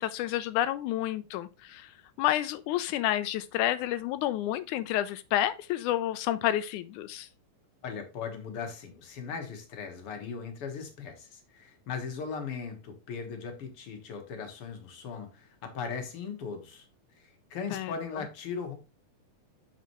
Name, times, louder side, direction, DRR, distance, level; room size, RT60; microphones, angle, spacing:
voice 1, 0.0-1.9 2.2-7.3 17.7-17.9, left 13 dB, 80° left, 1.9 m, -29 dB
voice 2, 7.8-16.9 17.2-18.7, left 6 dB, 55° left, 1.9 m, -38 dB
7.5 x 5.6 x 3.0 m
omnidirectional pair, 3.6 m